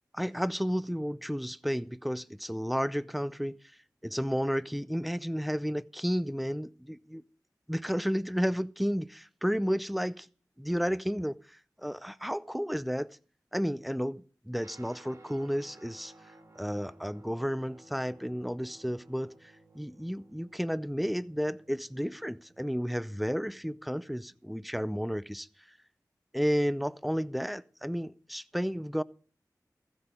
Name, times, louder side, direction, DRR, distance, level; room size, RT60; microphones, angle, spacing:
voice 1, 0.1-3.6 4.0-7.2 7.7-10.3 10.6-13.2 13.5-16.1 16.6-25.5 26.3-29.0, equal, ahead, 0.5 m, -32 dB
Guitar, 14.6-24.2, right 2 dB, 55° right, 1.9 m, -58 dB
15.0 x 8.0 x 5.2 m
wide cardioid pair, 55°, 7 cm